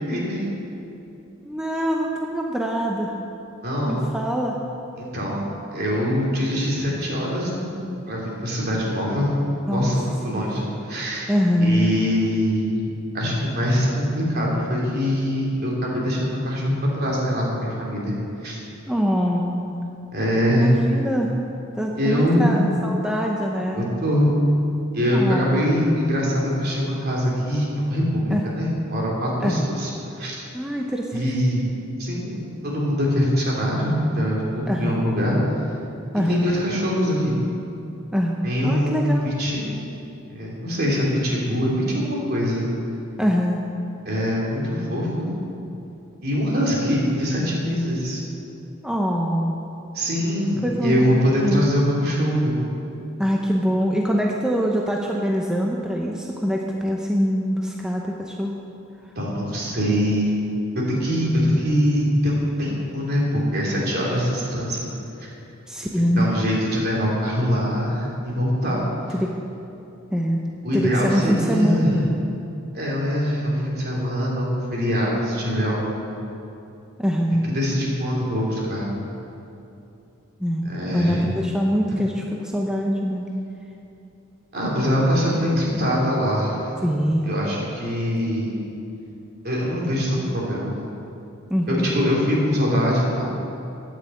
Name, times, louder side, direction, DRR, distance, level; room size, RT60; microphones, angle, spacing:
voice 1, 0.1-0.5 3.6-4.1 5.0-5.4 5.7-7.7 8.1-9.3 9.7-11.3 11.6-12.8 13.1-18.1 18.4-18.6 20.1-20.7 21.9-22.5 23.7-24.4 24.9-29.9 30.2-30.4 31.1-31.6 32.0-35.4 36.2-37.4 38.4-39.7 40.3-42.6 44.0-45.3 46.2-48.2 49.9-52.6 59.1-60.4 60.9-64.9 65.2-65.3 66.2-68.8 70.6-72.0 72.7-75.8 77.5-78.9 80.6-81.3 84.5-86.7 87.3-88.6 89.4-90.7 91.7-93.2, equal, 50° right, -4 dB, 3.3 m, -23 dB
voice 2, 1.4-3.2 3.9-4.6 9.7-9.9 10.3-10.4 11.3-11.8 18.9-19.8 20.5-21.3 21.8-23.9 25.1-25.7 28.3-28.4 29.4-29.7 30.5-31.2 34.7-35.0 36.1-36.5 38.1-39.3 43.2-43.6 48.8-49.6 50.6-51.2 51.4-51.7 53.2-58.5 65.7-66.3 69.1-69.3 70.1-70.4 70.7-72.1 77.0-77.5 80.4-83.3 86.8-87.3 91.5-91.8, equal, 5° right, -1 dB, 0.7 m, -23 dB
9.2 x 8.8 x 8.4 m, 2.8 s
head